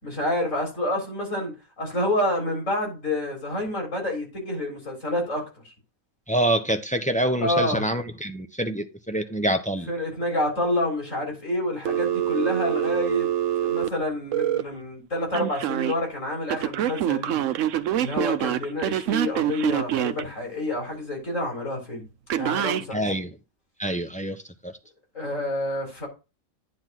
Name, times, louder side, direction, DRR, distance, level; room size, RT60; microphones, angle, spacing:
voice 1, 0.0-5.4 7.4-7.8 9.1-9.2 9.9-13.3 13.6-17.4 18.0-22.0 22.3-23.0 25.1-26.1, left 1 dB, 70° left, 4.3 m, -28 dB
voice 2, 6.3-9.9 22.9-23.3 23.8-24.7, right 1 dB, 5° left, 0.7 m, -26 dB
Telephone, 11.9-14.6 15.3-15.9 16.5-20.2 22.3-22.8, right 11 dB, 75° right, 1.0 m, -25 dB
9.7 x 3.6 x 6.0 m
omnidirectional pair, 1.4 m